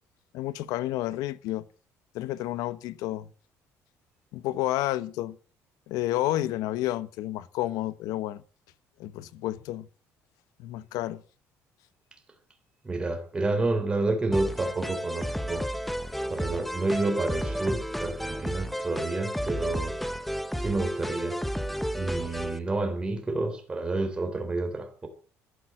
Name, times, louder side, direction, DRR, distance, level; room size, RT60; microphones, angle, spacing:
voice 1, 0.3-1.6 2.1-3.3 4.3-5.4 5.9-8.4 9.0-9.9 10.6-11.2, left 15 dB, 85° left, 1.1 m, -30 dB
voice 2, 12.8-15.6 16.3-19.9 20.6-21.4 21.9-25.1, right 2 dB, 15° right, 3.5 m, -29 dB
sound 1, 14.3-22.6, equal, ahead, 1.0 m, -32 dB
13.0 x 11.0 x 7.4 m
cardioid pair, 160°, 6 cm